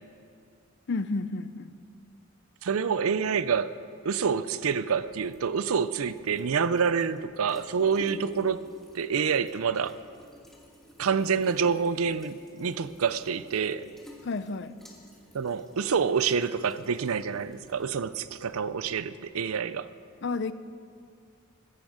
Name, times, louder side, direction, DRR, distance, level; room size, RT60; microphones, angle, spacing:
voice 1, 0.9-1.8 14.2-14.7 20.2-20.5, left 3 dB, 55° left, 13 dB, 0.5 m, -31 dB
voice 2, 2.6-8.6 8.9-10.0 11.0-13.9 15.3-19.9, right 6 dB, 90° right, 15 dB, 0.5 m, -27 dB
sound 1, 4.7-19.6, equal, ahead, 1.8 m, -53 dB
15.5 x 14.0 x 5.1 m, 2.3 s
head